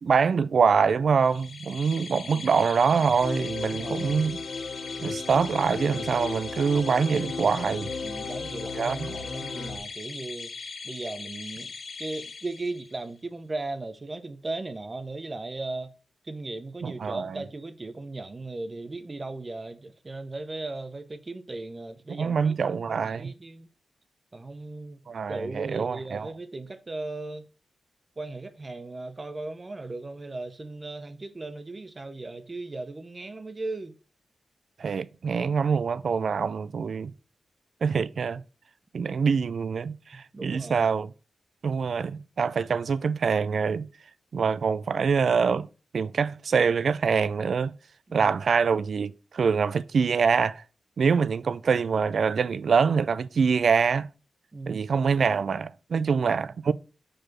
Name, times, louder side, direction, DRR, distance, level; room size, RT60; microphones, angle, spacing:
voice 1, 0.0-4.4 5.0-7.9 8.7-9.1 16.8-17.4 22.1-23.3 25.1-26.3 34.8-37.1 37.8-38.4 38.9-41.1 41.6-43.9 44.3-45.7 45.9-47.7 48.1-50.6 51.0-54.1 54.7-56.7, right 5 dB, 60° right, 0.3 m, -25 dB
sound 1, 1.2-13.1, left 4 dB, 50° left, 1.0 m, -40 dB
sound 2, 3.2-9.8, left 4 dB, 85° left, 1.1 m, -35 dB
voice 2, 3.6-4.1 8.0-11.7 12.0-15.9 16.2-23.7 24.3-25.0 25.3-27.5 28.2-34.0 40.1-40.9 48.1-48.3 54.5-54.9, right 2 dB, 25° right, 0.6 m, -37 dB
4.9 x 4.7 x 5.9 m
wide cardioid pair, 165°, 0 cm